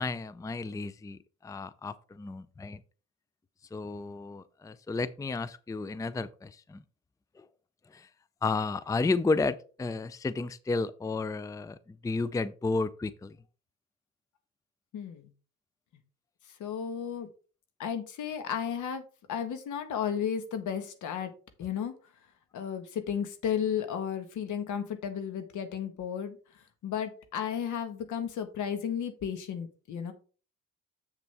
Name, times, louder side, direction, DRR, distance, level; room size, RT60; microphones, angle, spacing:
voice 1, 0.0-2.8 3.7-6.8 7.4-7.5 7.9-8.1 8.4-13.4, left 3 dB, 10° left, 0.4 m, -32 dB
voice 2, 14.9-15.3 16.6-17.3 17.8-19.0 19.3-21.3 21.6-21.9 22.5-26.4 26.8-30.1, left 8 dB, 75° left, 1.5 m, -33 dB
7.3 x 6.8 x 3.5 m
cardioid pair, 90°, 30 cm